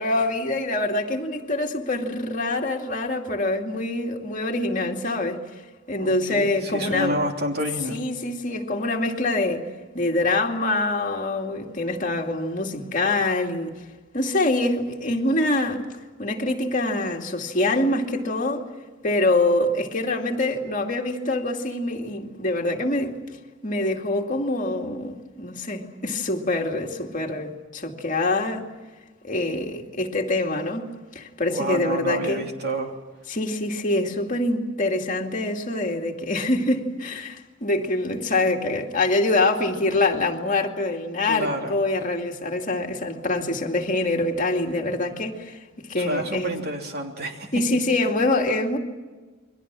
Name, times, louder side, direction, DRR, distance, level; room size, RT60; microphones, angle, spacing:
voice 1, 0.0-5.4 5.9-7.2 7.9-9.7 9.9-13.8 14.1-15.9 16.2-18.7 19.0-23.2 23.6-28.7 29.2-30.9 31.1-32.5 33.3-46.5 47.5-48.8, left 2 dB, 40° left, 2.4 m, -25 dB
voice 2, 6.0-8.0 31.5-32.9 41.3-41.7 45.9-47.5, right 1 dB, 55° right, 3.2 m, -29 dB
29.5 x 23.0 x 6.2 m
head